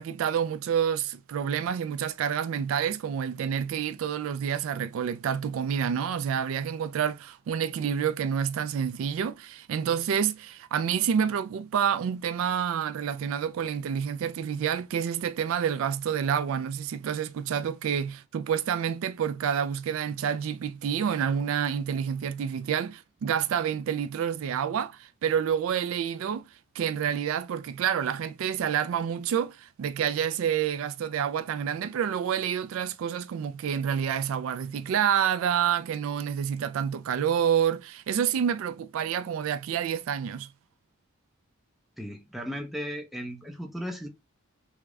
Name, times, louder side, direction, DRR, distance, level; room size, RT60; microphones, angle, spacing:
voice 1, 0.0-26.4 26.8-40.5, right 8 dB, 65° right, 0.3 m, -28 dB
voice 2, 42.0-44.1, equal, ahead, 0.5 m, -36 dB
3.3 x 2.1 x 3.5 m
head